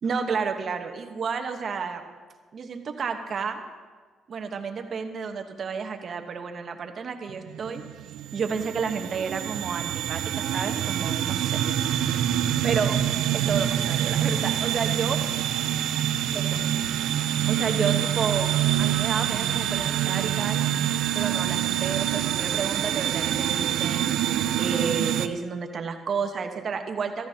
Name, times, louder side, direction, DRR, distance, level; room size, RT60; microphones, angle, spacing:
voice 1, 0.0-2.0 2.5-3.6 4.3-7.8 8.3-11.6 12.0-12.3 12.6-13.0 13.3-15.2 16.3-16.6 17.5-20.7 21.1-24.1 24.6-27.3, right 5 dB, 55° right, 5 dB, 1.1 m, -31 dB
sound 1, 7.3-25.3, right 11 dB, 85° right, 0.4 m, -26 dB
14.5 x 14.5 x 2.8 m, 1.4 s
cardioid pair, 90°, 0 cm